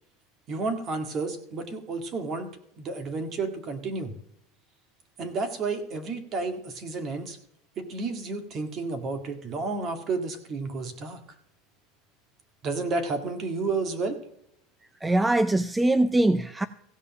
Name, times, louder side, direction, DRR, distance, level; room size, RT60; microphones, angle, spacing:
voice 1, 0.5-2.5 2.8-4.1 5.2-7.4 7.8-11.2 12.6-14.2, right 3 dB, 35° right, 1.9 m, -31 dB
voice 2, 15.0-16.7, right 1 dB, 10° right, 0.4 m, -22 dB
16.0 x 5.5 x 7.3 m
supercardioid pair, 140°, 0 cm